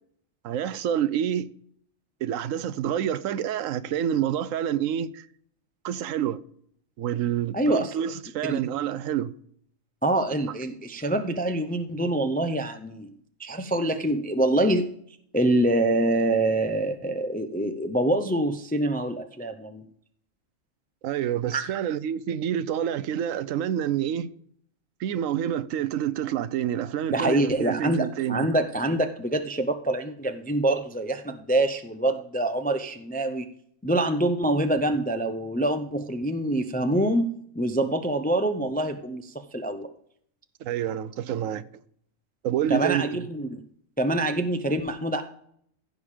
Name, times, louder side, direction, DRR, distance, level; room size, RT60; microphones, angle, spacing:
voice 1, 0.4-1.5 2.2-5.3 5.8-6.4 7.0-9.3 21.0-24.3 25.0-28.5 40.6-41.7 42.4-43.2, right 10 dB, 80° right, 1.0 m, -28 dB
voice 2, 7.5-7.9 8.5-8.6 10.0-13.1 13.4-14.9 15.3-19.9 21.5-21.6 27.1-33.5 33.8-39.9 42.7-43.6 44.0-45.2, right 1 dB, 15° left, 0.3 m, -25 dB
15.5 x 5.2 x 5.0 m
omnidirectional pair, 1.4 m